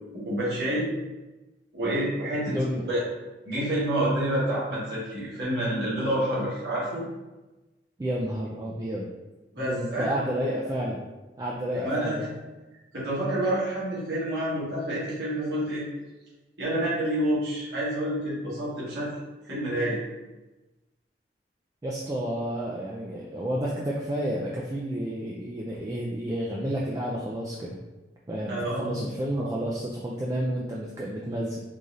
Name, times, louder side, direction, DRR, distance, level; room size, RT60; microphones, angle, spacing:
voice 1, 0.1-0.9 1.7-2.5 2.9-3.0 3.4-7.1 9.5-10.1 11.7-12.3 12.9-15.8 16.6-19.1 19.4-20.0 28.5-29.0 29.3-29.5, right 1 dB, 70° right, -8 dB, 1.4 m, -28 dB
voice 2, 2.5-2.8 8.0-9.1 9.6-11.0 11.4-12.3 21.8-27.8 28.3-31.6, equal, 20° right, -4 dB, 0.3 m, -30 dB
3.8 x 3.0 x 2.5 m, 1.1 s
head